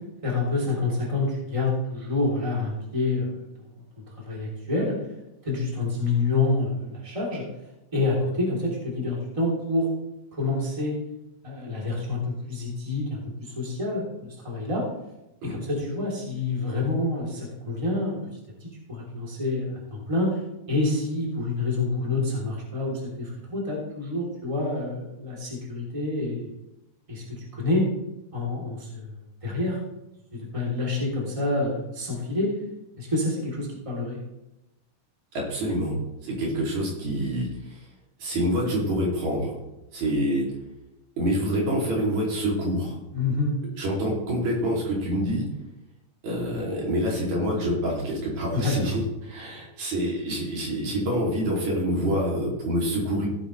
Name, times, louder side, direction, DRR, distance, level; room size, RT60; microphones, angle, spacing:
voice 1, 0.2-3.4 4.0-5.0 5.4-7.5 7.9-9.9 10.3-10.9 11.4-14.8 15.4-18.2 18.6-20.4 20.7-26.5 27.1-27.8 28.3-29.1 29.4-29.8 30.3-32.5 33.0-34.2 43.1-43.6 48.5-48.7, left 2 dB, 10° right, -3 dB, 3.0 m, -27 dB
voice 2, 35.3-36.0 36.2-37.9 38.2-39.6 39.9-40.5 41.2-43.0 43.8-45.5 46.2-53.3, equal, 65° right, -3 dB, 4.1 m, -26 dB
17.0 x 8.5 x 3.2 m, 0.92 s
omnidirectional pair, 3.5 m